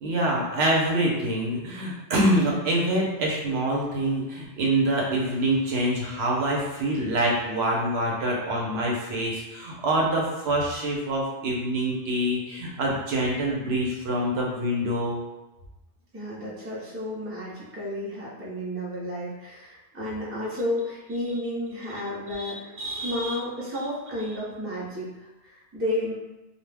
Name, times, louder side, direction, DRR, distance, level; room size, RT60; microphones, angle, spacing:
voice 1, 0.0-15.2 22.3-23.4, right 1 dB, 70° right, -2 dB, 0.8 m, -26 dB
voice 2, 16.1-26.1, left 1 dB, 15° right, -7 dB, 0.5 m, -32 dB
2.3 x 2.0 x 3.3 m, 1.0 s
omnidirectional pair, 1.1 m